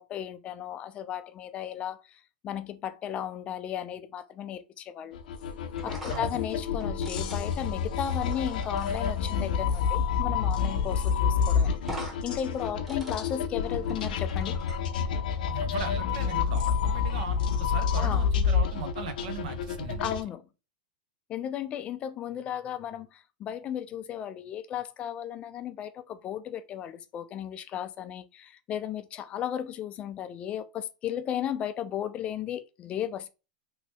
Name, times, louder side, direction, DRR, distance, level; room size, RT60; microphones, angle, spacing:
voice 1, 0.0-5.2 5.8-14.6 18.0-18.3 20.0-20.5 21.3-33.3, left 10 dB, 25° left, 0.3 m, -35 dB
sound 1, 5.1-20.2, left 6 dB, 80° left, 0.6 m, -28 dB
sound 2, 5.8-9.1 10.6-10.7 11.0-11.1 11.8-12.2 12.5-14.8, left 1 dB, 5° right, 0.9 m, -43 dB
voice 2, 6.1-6.4 15.5-20.1, right 5 dB, 70° right, 0.7 m, -38 dB
3.0 x 2.9 x 3.1 m
supercardioid pair, 145°, 5 cm